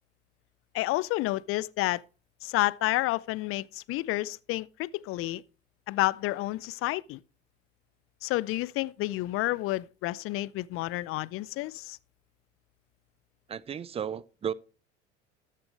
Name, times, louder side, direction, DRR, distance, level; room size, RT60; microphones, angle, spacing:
voice 1, 0.7-2.0 2.4-5.4 5.9-7.2 8.2-12.0, left 18 dB, 40° left, 0.5 m, -30 dB
voice 2, 13.5-14.5, right 8 dB, 20° right, 0.5 m, -34 dB
13.0 x 7.6 x 3.2 m
figure-of-eight pair, 70°, 34 cm